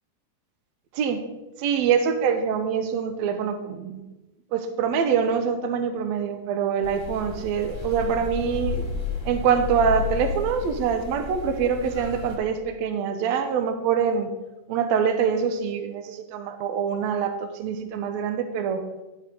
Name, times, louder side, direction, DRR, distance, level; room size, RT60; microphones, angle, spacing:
voice 1, 1.6-4.0 4.5-8.9 9.2-14.3 14.7-18.8, right 7 dB, 75° right, 8 dB, 1.9 m, -25 dB
sound 1, 6.8-12.4, left 5 dB, 20° left, 0.7 m, -32 dB
11.5 x 7.2 x 3.8 m, 1.1 s
omnidirectional pair, 3.4 m